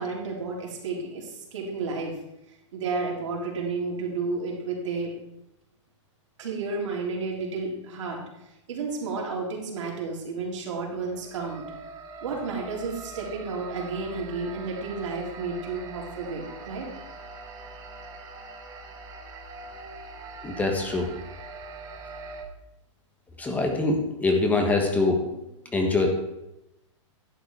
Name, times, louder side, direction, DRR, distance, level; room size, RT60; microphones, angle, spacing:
voice 1, 0.0-2.2 2.7-5.1 6.4-8.2 8.7-11.6 12.2-16.9, right 4 dB, 70° right, -1 dB, 3.7 m, -31 dB
sound 1, 10.9-22.4, right 3 dB, 20° right, 1.2 m, -42 dB
voice 2, 20.4-21.1 23.4-25.2 25.7-26.1, left 3 dB, 10° left, 3 dB, 1.3 m, -24 dB
11.0 x 8.3 x 4.8 m, 0.90 s
hypercardioid pair, 150°, 16 cm